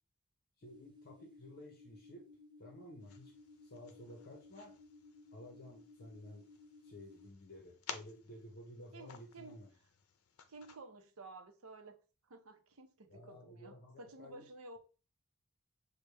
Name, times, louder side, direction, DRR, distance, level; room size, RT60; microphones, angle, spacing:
voice 1, 0.6-2.2 2.6-3.3 3.6-4.7 5.3-6.5 6.8-9.7 13.1-14.4, left 1 dB, 50° left, 1.0 m, -53 dB
sound 1, 0.6-7.3, left 3 dB, 20° right, 1.0 m, -59 dB
sound 2, 3.0-10.8, left 7 dB, 85° left, 0.6 m, -54 dB
voice 2, 8.9-9.6 10.5-12.0 12.2-14.8, right 2 dB, 80° right, 0.8 m, -53 dB
6.8 x 2.3 x 3.4 m
head